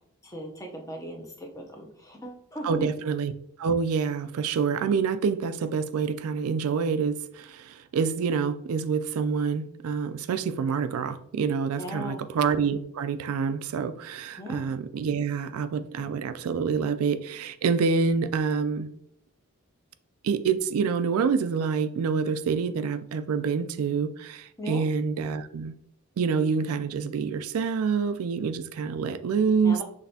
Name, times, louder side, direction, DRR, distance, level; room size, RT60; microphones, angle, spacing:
voice 1, 0.2-2.9 11.8-12.2 14.4-14.7 24.6-24.9 29.6-29.8, equal, 15° left, 0.7 m, -37 dB
voice 2, 2.6-3.3 3.6-18.9 20.2-25.8 26.2-29.8, right 5 dB, 80° right, 0.3 m, -27 dB
6.0 x 3.2 x 2.7 m
head